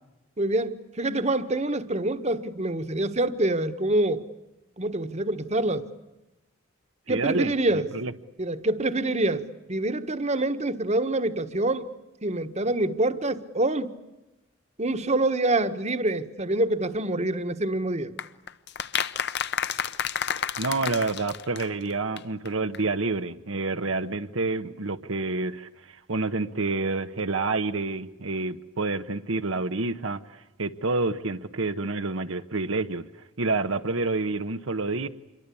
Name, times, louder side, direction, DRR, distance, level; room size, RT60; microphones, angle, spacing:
voice 1, 0.4-4.2 4.8-5.9 7.1-7.9 8.4-11.9 12.2-14.0 14.8-18.1, right 2 dB, 35° right, 9 dB, 1.4 m, -26 dB
voice 2, 7.1-8.1 20.6-33.1 33.4-35.1, right 3 dB, 75° right, 8 dB, 1.1 m, -28 dB
sound 1, 18.2-21.9 22.2-22.3 22.4-22.5 22.7-22.8, left 8 dB, 55° left, 1.1 m, -30 dB
27.5 x 23.5 x 8.5 m, 0.98 s
head